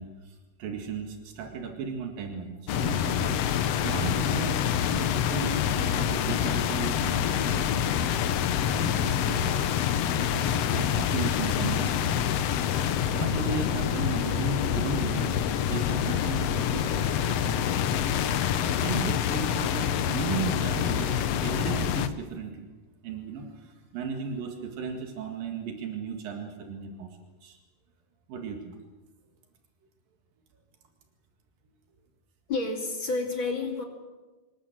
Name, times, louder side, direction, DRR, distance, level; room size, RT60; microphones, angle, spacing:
voice 1, 0.0-7.7 8.7-9.7 10.3-12.3 13.1-17.7 18.2-22.7 23.0-27.1 27.4-27.6 28.3-28.8, right 5 dB, 85° right, 3 dB, 3.8 m, -36 dB
sound 1, 2.7-22.1, left 9 dB, 70° left, 1.6 m, -26 dB
voice 2, 32.5-33.8, left 3 dB, 40° left, 3 dB, 3.0 m, -29 dB
26.0 x 21.5 x 7.5 m, 1.2 s
omnidirectional pair, 3.9 m